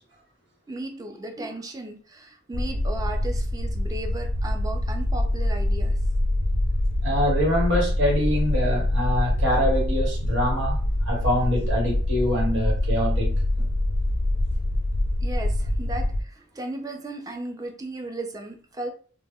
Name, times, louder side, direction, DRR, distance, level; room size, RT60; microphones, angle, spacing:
voice 1, 0.7-6.0 15.2-18.9, right 2 dB, 20° right, 4 dB, 0.4 m, -35 dB
sound 1, 2.5-16.2, left 1 dB, 55° left, 0.4 m, -25 dB
voice 2, 7.0-10.8 11.0-13.7, equal, 65° right, -2 dB, 1.2 m, -25 dB
2.1 x 2.0 x 3.5 m, 0.42 s
head